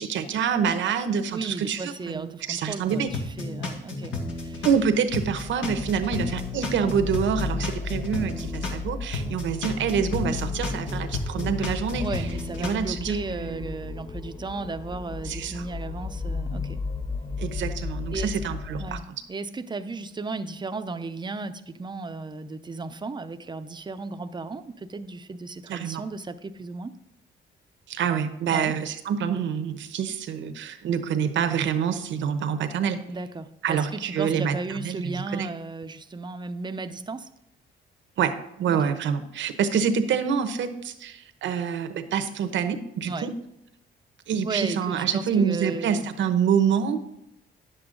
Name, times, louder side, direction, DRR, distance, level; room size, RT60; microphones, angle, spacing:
voice 1, 0.0-3.1 4.6-12.2 12.6-13.7 15.2-15.6 17.4-19.0 25.7-26.0 27.9-33.0 33.6-34.6 34.8-35.5 38.2-43.3 44.3-47.1, right 7 dB, 70° right, 9 dB, 1.0 m, -26 dB
voice 2, 1.3-4.7 12.0-16.8 18.1-18.4 18.8-26.9 28.5-28.7 33.1-37.3 38.7-38.9 43.0-43.4 44.4-46.1, right 3 dB, 20° right, 10 dB, 0.6 m, -35 dB
sound 1, 2.9-4.8 5.1-8.8 9.1-12.7, left 3 dB, 75° left, 2.0 m, -32 dB
sound 2, 4.3-19.0, left 4 dB, 15° left, 0.5 m, -35 dB
10.0 x 7.9 x 3.8 m, 0.82 s
cardioid pair, 90°, 20 cm